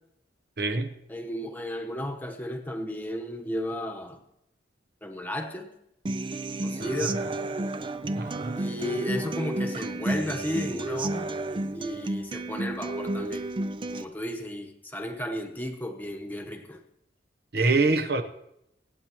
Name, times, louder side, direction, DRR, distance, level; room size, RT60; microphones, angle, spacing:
voice 1, 0.6-0.9 6.8-7.3 8.2-8.6 17.5-18.2, right 3 dB, 55° right, 9 dB, 1.0 m, -25 dB
voice 2, 1.1-4.2 5.0-5.7 6.6-7.2 8.6-11.3 11.7-13.5 13.9-16.8, left 1 dB, 10° left, 4 dB, 1.1 m, -34 dB
Human voice / Acoustic guitar, 6.1-14.0, right 2 dB, 25° right, 0.4 m, -31 dB
25.5 x 8.6 x 3.1 m, 0.81 s
head